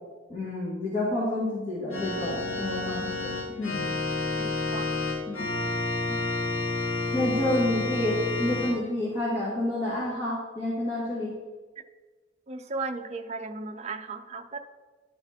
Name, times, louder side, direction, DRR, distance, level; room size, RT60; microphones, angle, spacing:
voice 1, 0.3-3.3 3.6-3.8 5.3-5.5 6.1-6.2 7.1-11.3, left 1 dB, 30° left, -8 dB, 1.9 m, -29 dB
Organ, 1.9-8.7, left 3 dB, 75° left, 2.4 m, -30 dB
voice 2, 4.4-4.9 12.5-14.6, right 3 dB, 35° right, 7 dB, 0.5 m, -36 dB
11.0 x 4.6 x 4.4 m, 1.4 s
head